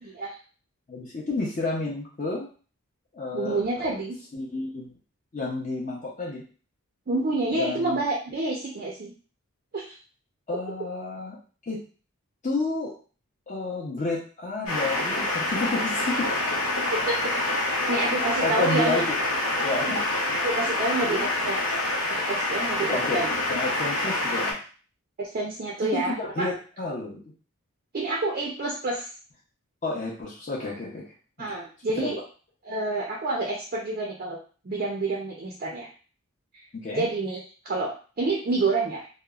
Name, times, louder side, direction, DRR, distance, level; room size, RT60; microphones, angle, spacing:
voice 1, 0.9-2.5 3.1-4.0 4.3-4.9 5.3-6.4 7.5-8.0 10.5-11.4 11.7-11.8 12.4-12.9 13.5-16.3 18.4-19.1 19.6-20.0 21.0-21.2 22.9-24.6 25.9-27.3 29.8-31.0 32.0-32.1 36.8-37.0, left 3 dB, 35° left, -4 dB, 0.5 m, -30 dB
voice 2, 3.3-4.1 7.1-9.1 9.7-9.9 16.9-17.2 17.6-19.0 19.9-20.0 20.4-21.6 22.3-23.3 25.2-26.5 27.9-29.1 31.4-32.2 32.7-34.4 34.6-35.9 36.5-36.6 37.0-39.1, right 2 dB, 40° right, -2 dB, 0.4 m, -28 dB
sound 1, 14.7-24.5, left 2 dB, 90° left, 0.8 m, -26 dB
2.8 x 2.0 x 2.3 m, 0.38 s
head